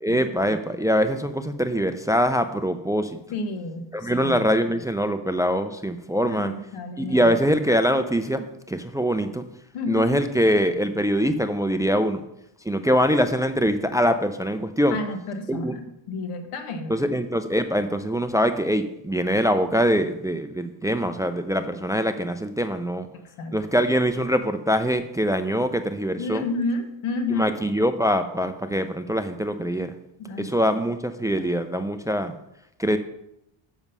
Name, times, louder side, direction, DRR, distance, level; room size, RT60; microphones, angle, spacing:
voice 1, 0.0-3.2 3.9-6.5 7.0-9.4 9.9-12.2 12.6-15.0 15.5-15.7 16.9-23.1 23.5-26.4 27.3-29.9 30.4-32.3 32.8-33.0, equal, 10° right, 9 dB, 0.4 m, -23 dB
voice 2, 3.3-4.5 6.2-7.4 9.7-10.2 14.9-17.1 23.1-23.5 26.2-27.5 30.2-30.5 31.3-31.4, left 2 dB, 90° left, 7 dB, 1.3 m, -31 dB
7.1 x 6.0 x 5.5 m, 0.83 s
cardioid pair, 100°, 50 cm